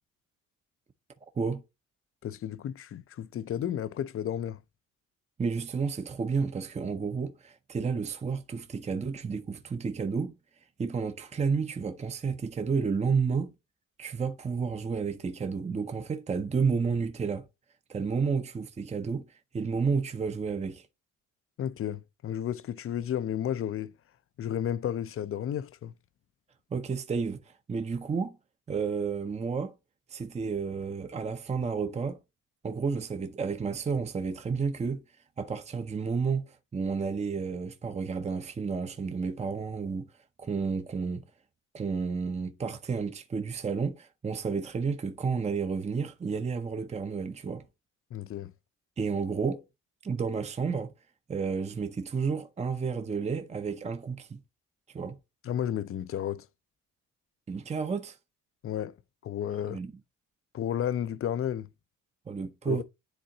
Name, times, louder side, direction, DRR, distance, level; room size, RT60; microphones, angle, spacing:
voice 1, 2.2-4.6 21.6-23.9 24.4-25.9 48.1-48.5 55.4-56.5 58.6-59.0 59.2-59.8 60.5-61.7 62.6-62.8, left 10 dB, 45° left, 0.5 m, -32 dB
voice 2, 5.4-10.3 10.8-13.5 14.0-17.5 17.9-20.9 26.7-28.4 28.7-29.7 30.1-32.2 32.6-35.0 35.4-40.1 40.4-41.2 41.7-47.6 49.0-49.6 50.0-50.9 51.3-54.4 54.9-55.2 57.5-58.2 59.7-59.9 62.3-62.8, right 5 dB, 20° right, 0.7 m, -31 dB
10.5 x 3.7 x 2.7 m
cardioid pair, 90°, 30 cm